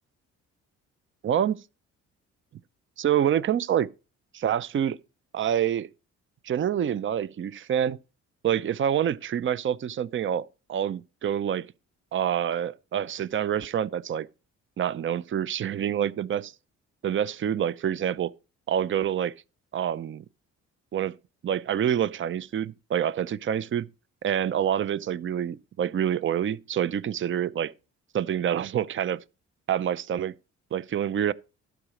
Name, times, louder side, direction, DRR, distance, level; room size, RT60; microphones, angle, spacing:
voice 1, 1.2-1.6 3.0-3.9 4.3-5.0 5.3-5.9 6.4-8.0 8.4-11.7 12.1-14.3 14.8-16.5 17.0-18.3 18.7-19.3 19.7-20.2 20.9-21.1 21.4-23.9 24.2-27.7 28.1-29.2 29.7-30.3 30.7-31.3, right 9 dB, 40° right, 0.6 m, -27 dB
12.0 x 4.9 x 6.4 m
cardioid pair, 90°, 30 cm